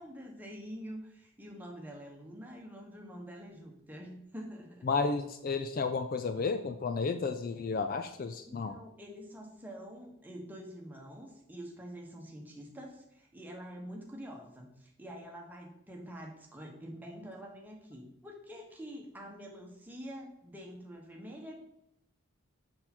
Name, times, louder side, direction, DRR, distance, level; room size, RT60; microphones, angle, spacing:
voice 1, 0.0-4.9 8.4-21.6, equal, 10° right, 0 dB, 1.1 m, -46 dB
voice 2, 4.9-8.8, left 4 dB, 40° left, 8 dB, 0.3 m, -32 dB
6.5 x 5.7 x 4.3 m, 0.80 s
head